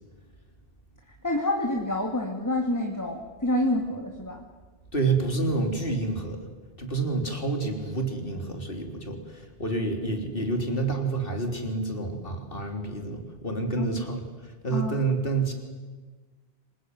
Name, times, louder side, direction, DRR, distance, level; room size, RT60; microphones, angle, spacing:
voice 1, 1.2-4.4 13.8-14.0 14.7-15.0, left 1 dB, 15° left, 2 dB, 2.4 m, -28 dB
voice 2, 4.9-6.4 6.8-15.5, right 3 dB, 55° left, 4 dB, 3.9 m, -28 dB
26.5 x 19.5 x 9.6 m, 1.4 s
omnidirectional pair, 1.1 m